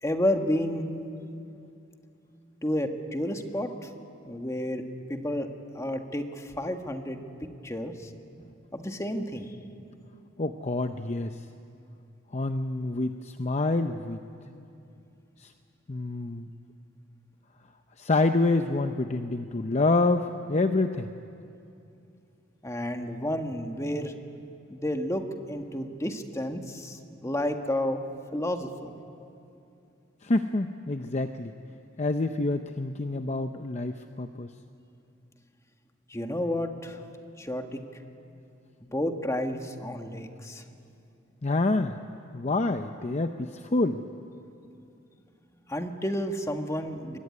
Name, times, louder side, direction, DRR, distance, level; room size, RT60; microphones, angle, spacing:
voice 1, 0.0-0.9 2.6-3.9 4.3-4.8 5.1-5.5 5.7-7.2 7.6-8.1 8.7-9.6 22.6-24.1 24.7-28.0 28.3-28.9 36.1-37.0 37.4-37.8 38.8-40.6 45.7-47.2, left 1 dB, 15° left, 5 dB, 1.7 m, -31 dB
voice 2, 10.4-11.4 12.3-14.2 15.4-15.5 15.9-16.5 18.0-21.1 30.2-31.5 32.0-34.5 41.4-42.0 42.3-44.0, left 2 dB, 35° left, 7 dB, 0.7 m, -27 dB
26.0 x 23.0 x 9.8 m, 2.6 s
head